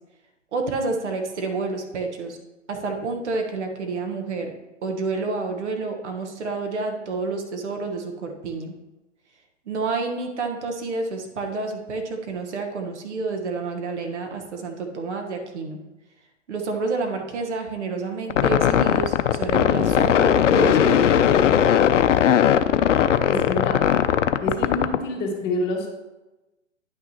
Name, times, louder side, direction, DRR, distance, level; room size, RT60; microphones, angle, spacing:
voice 1, 0.5-2.4 2.7-4.5 4.8-8.7 9.6-15.8 16.5-21.6, right 3 dB, 65° right, 3 dB, 1.3 m, -29 dB
sound 1, 18.3-25.0, left 9 dB, 75° left, 0.6 m, -18 dB
voice 2, 23.3-23.8 24.4-25.9, left 2 dB, 30° left, -1 dB, 1.7 m, -27 dB
9.9 x 6.0 x 2.9 m, 1.0 s
hypercardioid pair, 120°, 37 cm